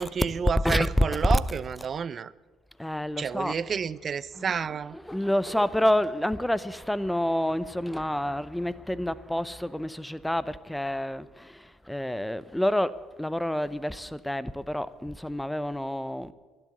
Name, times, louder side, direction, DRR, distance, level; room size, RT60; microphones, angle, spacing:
voice 1, 0.0-2.3 3.2-5.0, right 6 dB, 45° right, 0.5 m, -30 dB
voice 2, 0.6-1.0 1.3-1.9 2.8-3.5 4.3-12.9 13.2-16.3, left 1 dB, 5° left, 0.7 m, -28 dB
12.0 x 10.5 x 8.4 m
supercardioid pair, 70°, 0 cm